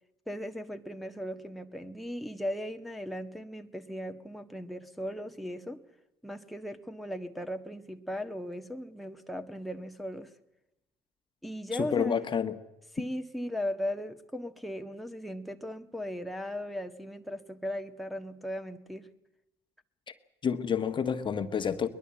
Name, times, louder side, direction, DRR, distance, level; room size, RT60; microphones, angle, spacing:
voice 1, 0.3-5.8 6.2-10.3 11.4-12.2 12.9-19.1, equal, ahead, 1.6 m, -37 dB
voice 2, 11.7-12.5 20.1-20.2 20.4-21.9, left 7 dB, 35° left, 1.5 m, -29 dB
22.0 x 21.0 x 7.7 m
hypercardioid pair, 60°, 14 cm